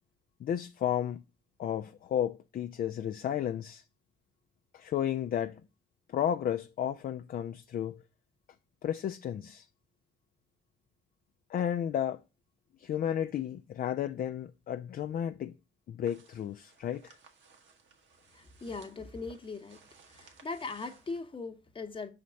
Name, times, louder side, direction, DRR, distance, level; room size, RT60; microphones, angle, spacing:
voice 1, 0.4-1.2 1.6-3.8 4.7-5.6 6.1-8.0 8.8-9.7 11.5-12.2 12.8-15.6 15.9-17.2, left 10 dB, 50° left, 0.4 m, -33 dB
sound 1, 16.0-21.2, right 5 dB, 70° right, 1.3 m, -60 dB
voice 2, 18.3-19.8 20.1-22.1, left 4 dB, 25° left, 0.9 m, -40 dB
5.1 x 4.2 x 5.7 m
cardioid pair, 90°, 20 cm